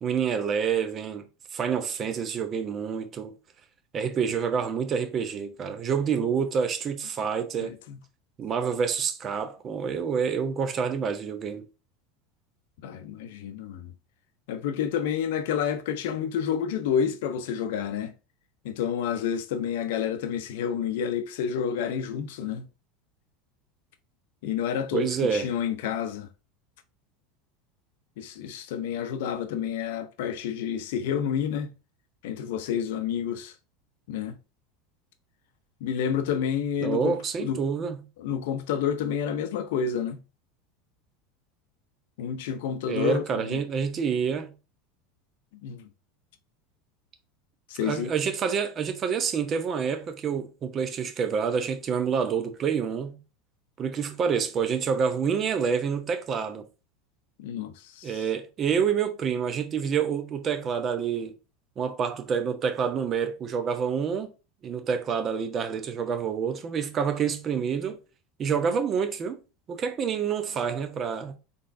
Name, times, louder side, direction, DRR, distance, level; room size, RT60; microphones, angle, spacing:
voice 1, 0.0-3.3 3.9-7.7 8.4-11.6 24.9-25.5 36.8-38.0 42.9-44.5 47.8-53.2 53.8-56.7 58.0-61.3 61.8-64.3 64.6-68.0 68.4-69.4 69.7-71.3, right 6 dB, 35° right, 0.9 m, -28 dB
voice 2, 7.6-8.0 12.8-13.9 14.5-18.1 18.6-22.7 24.4-26.3 28.2-31.7 32.2-33.5 34.1-34.4 35.8-37.6 38.2-40.2 42.2-43.6 45.6-45.9 47.7-48.1 57.4-58.2, left 8 dB, 70° left, 0.6 m, -29 dB
3.8 x 3.6 x 2.6 m
hypercardioid pair, 85°, 0 cm